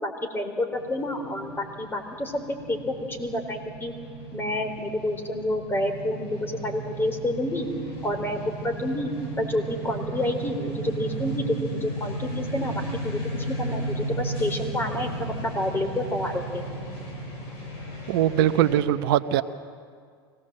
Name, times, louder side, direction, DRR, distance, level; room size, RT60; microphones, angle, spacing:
voice 1, 0.0-3.9 4.3-7.7 8.0-9.1 9.4-16.6, left 1 dB, 15° left, 5 dB, 3.9 m, -29 dB
sound 1, 0.7-18.8, right 2 dB, 55° left, 7.6 m, -35 dB
voice 2, 18.1-19.4, right 12 dB, 70° right, 11 dB, 0.8 m, -21 dB
25.0 x 18.0 x 7.6 m, 2.1 s
hypercardioid pair, 90°, 13 cm